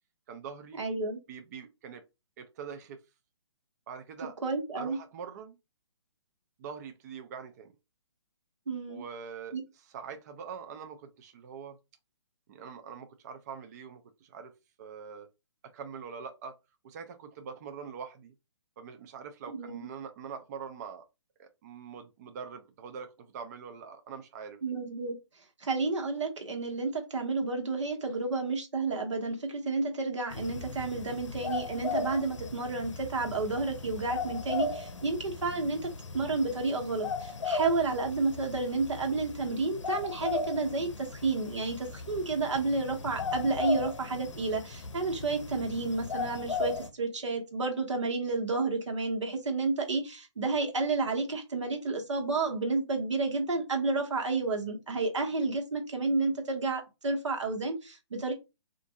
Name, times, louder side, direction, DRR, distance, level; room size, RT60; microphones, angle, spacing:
voice 1, 0.3-0.8 1.3-2.0 2.4-3.0 3.9-4.4 4.7-5.6 6.6-7.7 8.9-11.8 12.5-14.5 14.8-15.3 15.7-16.5 16.8-18.3 18.8-21.0 21.4-24.6, right 6 dB, 35° right, 0.4 m, -43 dB
voice 2, 0.8-1.2 4.4-5.0 8.7-9.0 9.5-9.6 19.5-19.9 24.6-25.2 25.6-35.9 36.1-58.3, right 3 dB, 80° right, 1.1 m, -31 dB
sound 1, 30.3-46.9, left 4 dB, 90° left, 0.6 m, -37 dB
3.5 x 2.5 x 2.6 m
hypercardioid pair, 145°, 15 cm